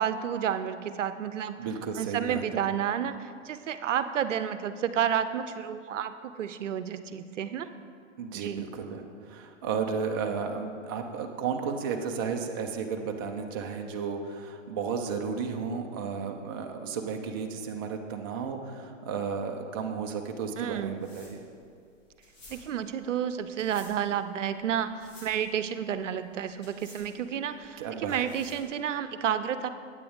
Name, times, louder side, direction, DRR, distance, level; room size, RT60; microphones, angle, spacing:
voice 1, 0.0-1.6 2.0-7.7 8.3-8.7 20.6-21.0 22.5-24.9 25.2-29.7, right 9 dB, 70° right, 12 dB, 0.6 m, -31 dB
voice 2, 1.6-2.6 8.2-21.4 27.8-28.2, right 6 dB, 20° right, 3 dB, 0.3 m, -33 dB
sound 1, 20.4-28.8, left 1 dB, 35° left, 2.5 m, -54 dB
9.1 x 8.7 x 3.5 m, 2.2 s
hypercardioid pair, 120°, 38 cm